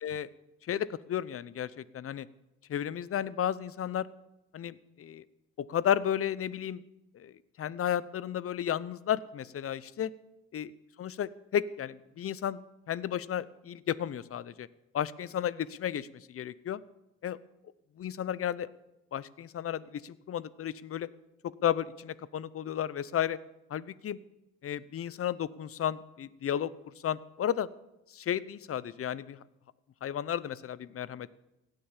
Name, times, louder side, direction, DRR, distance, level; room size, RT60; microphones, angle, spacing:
voice 1, 0.6-2.3 2.7-4.1 4.5-5.2 5.6-6.8 7.1-10.1 10.5-10.7 11.0-14.7 14.9-16.8 17.2-17.4 18.0-18.7 19.1-21.1 21.4-23.4 23.7-24.2 24.6-26.7 27.0-27.7 28.1-29.4 30.0-31.3, left 10 dB, 50° left, 20 dB, 0.7 m, -33 dB
16.5 x 9.1 x 7.3 m, 0.92 s
cardioid pair, 90°, 30 cm